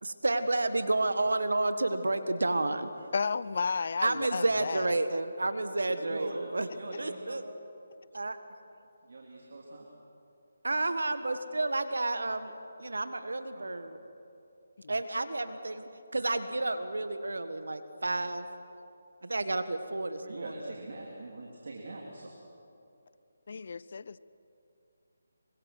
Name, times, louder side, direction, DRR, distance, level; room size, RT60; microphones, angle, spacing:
voice 1, 0.0-2.9 4.0-6.7 7.0-7.4 8.1-8.4 10.6-12.5 12.8-14.0 14.9-18.5 19.2-20.7, right 2 dB, 80° right, 10 dB, 1.6 m, -31 dB
voice 2, 3.1-5.0 23.5-24.2, left 5 dB, 55° left, 18 dB, 0.6 m, -33 dB
voice 3, 6.0-7.4 9.0-9.9 13.5-13.9 18.1-18.2 20.2-22.3, right 2 dB, 60° right, -1 dB, 3.6 m, -42 dB
26.5 x 24.5 x 6.2 m, 2.7 s
figure-of-eight pair, 155°, 0 cm